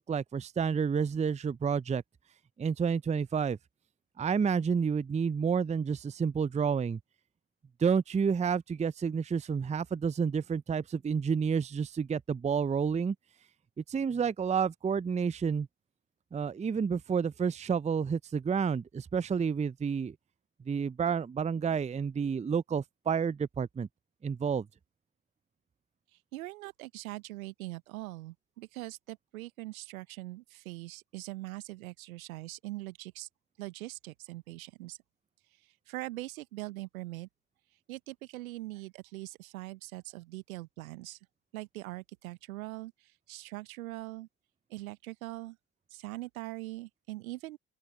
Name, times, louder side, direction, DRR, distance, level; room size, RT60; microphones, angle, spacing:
voice 1, 0.0-2.0 2.6-3.6 4.2-7.0 7.8-13.1 13.9-15.7 16.3-20.1 20.7-23.9 24.2-24.7, right 6 dB, 15° right, 0.6 m, -30 dB
voice 2, 26.1-33.3 33.6-35.0 35.9-37.3 37.9-41.2 41.5-44.3 44.7-45.6 45.9-47.6, right 19 dB, 80° right, 1.2 m, -42 dB
open air
figure-of-eight pair, 45°, 42 cm